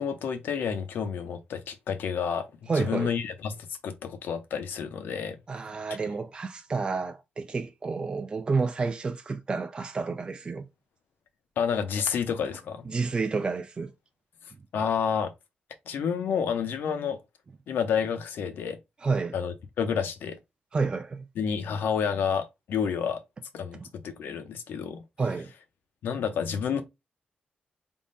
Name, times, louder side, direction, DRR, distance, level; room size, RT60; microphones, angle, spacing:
voice 1, 0.0-5.4 11.6-12.9 14.7-15.3 15.9-17.2 17.7-18.8 19.3-20.4 21.4-23.2 23.5-25.0 26.0-26.8, left 7 dB, 90° left, 0.7 m, -29 dB
voice 2, 2.7-3.1 5.5-10.7 12.9-13.9 19.0-19.3 20.7-21.2 25.2-25.5, right 4 dB, 30° right, 0.3 m, -30 dB
3.6 x 2.1 x 3.9 m
wide cardioid pair, 130°, 3 cm